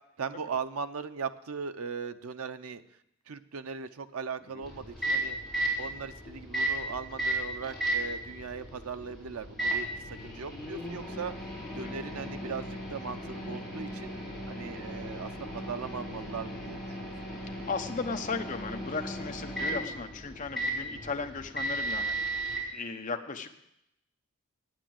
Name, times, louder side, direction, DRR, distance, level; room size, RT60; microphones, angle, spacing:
voice 1, 0.2-2.8 3.3-5.4 5.8-11.3 11.7-14.1 14.5-17.1 20.9-21.1, right 5 dB, 90° right, 10 dB, 0.6 m, -39 dB
Microwave oven, 4.6-22.6, right 1 dB, ahead, 3.9 m, -35 dB
voice 2, 17.7-22.3 22.7-23.5, left 4 dB, 35° left, 5 dB, 0.9 m, -36 dB
9.0 x 9.0 x 7.6 m, 0.81 s
head